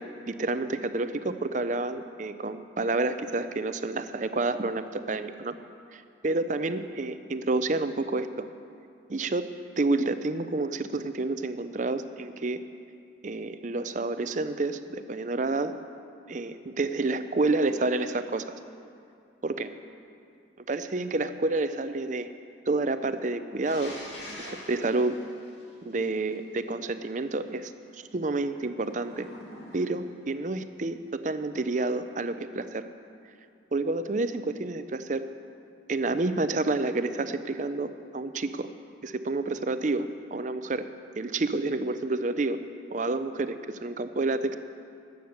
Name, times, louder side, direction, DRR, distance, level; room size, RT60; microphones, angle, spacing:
voice 1, 0.0-5.5 5.9-8.5 9.1-12.6 13.2-15.8 16.3-18.6 19.4-19.8 20.7-22.3 22.7-24.0 24.3-25.2 25.8-29.3 29.7-32.9 33.7-35.3 35.9-38.7 39.0-40.9 41.1-42.6 42.9-44.6, right 2 dB, 40° right, 11 dB, 0.5 m, -29 dB
sound 1, 23.6-26.4 28.8-30.2, left 1 dB, 65° left, 2.3 m, -44 dB
14.0 x 9.4 x 6.6 m, 2.5 s
head